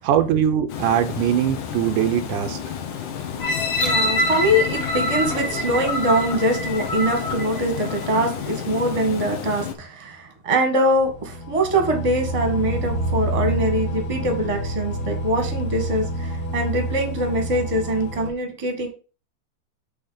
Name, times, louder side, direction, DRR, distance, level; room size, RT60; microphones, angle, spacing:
voice 1, 0.0-2.6, right 10 dB, 80° right, 2.1 m, -21 dB
Water, 0.7-9.8, left 8 dB, 70° left, 2.5 m, -31 dB
sound 1, 3.4-8.3 8.9-9.0, left 1 dB, 55° left, 3.6 m, -26 dB
voice 2, 3.8-18.9, right 1 dB, 15° right, 1.1 m, -23 dB
sound 2, 10.9-18.3, right 1 dB, 85° left, 3.2 m, -28 dB
7.9 x 3.4 x 6.5 m
omnidirectional pair, 3.8 m